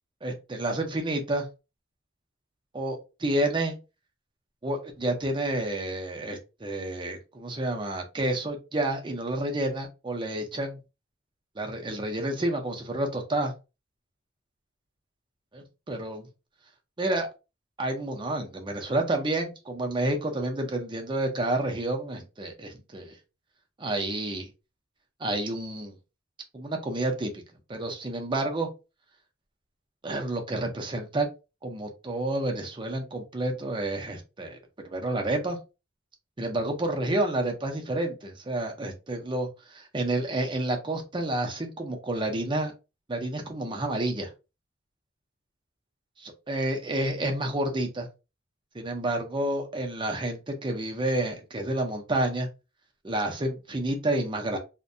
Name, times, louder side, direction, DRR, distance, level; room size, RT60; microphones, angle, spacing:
voice 1, 0.2-1.5 2.7-3.8 4.6-10.8 11.6-13.5 15.5-16.3 17.0-17.3 17.8-23.2 23.8-24.5 25.2-25.9 26.5-27.3 27.7-28.7 30.0-31.3 31.6-34.6 34.8-35.6 36.4-42.7 43.1-44.3 46.2-48.1 48.7-52.5 53.0-54.6, right 1 dB, 25° right, 3 dB, 0.6 m, -29 dB
2.6 x 2.1 x 2.6 m, 0.28 s
head